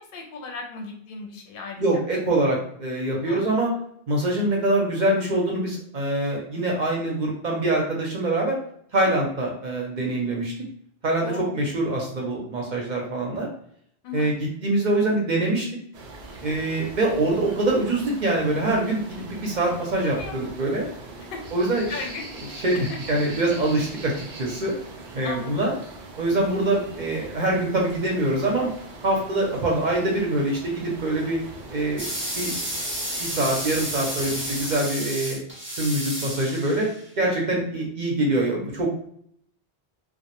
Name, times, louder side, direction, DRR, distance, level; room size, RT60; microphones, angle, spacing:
voice 1, 0.0-1.8 3.2-3.4 11.2-11.6 14.0-14.3 20.2-20.3 21.3-21.4 21.9-22.2 22.9-23.0 25.2-25.8, left 4 dB, 65° left, 1 dB, 0.7 m, -36 dB
voice 2, 1.8-3.7 4.1-8.6 8.9-10.6 11.0-13.5 14.1-15.6 16.4-20.9 21.5-22.1 22.6-24.7 25.1-25.7 26.1-28.7 29.0-31.4 31.7-32.5 33.2-35.4 35.8-36.9 37.2-38.9, right 2 dB, 55° right, -1 dB, 0.6 m, -24 dB
sound 1, 15.9-34.8, right 2 dB, 85° right, 0.8 m, -41 dB
sound 2, 32.0-37.0, equal, 15° right, 0.6 m, -31 dB
2.2 x 2.0 x 2.9 m, 0.67 s
omnidirectional pair, 1.0 m